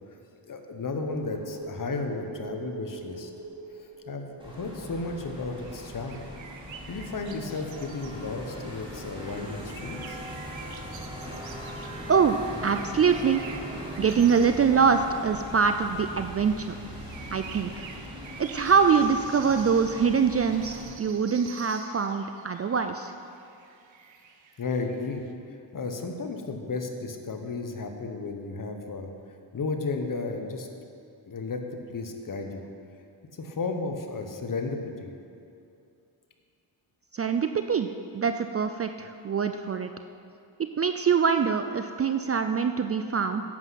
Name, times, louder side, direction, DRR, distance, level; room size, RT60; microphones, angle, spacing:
voice 1, 0.5-3.3 3.8-6.2 6.9-10.2 24.6-25.2 25.7-29.1 29.5-30.7 31.3-31.6 31.9-32.6 33.4-35.1, left 3 dB, 45° left, 4 dB, 1.2 m, -33 dB
sound 1, 1.1-6.3 6.6-6.7, right 3 dB, 50° right, 1.0 m, -42 dB
sound 2, 4.4-20.9, equal, 10° right, 3.2 m, -40 dB
sound 3, 5.6-25.3, right 6 dB, 80° right, 1.0 m, -49 dB
voice 2, 12.6-13.4 14.0-16.7 17.3-17.9 18.4-23.1 37.1-39.9 40.6-43.4, right 6 dB, 35° right, 7 dB, 0.4 m, -24 dB
11.0 x 8.0 x 5.8 m, 2.5 s
cardioid pair, 90°, 45 cm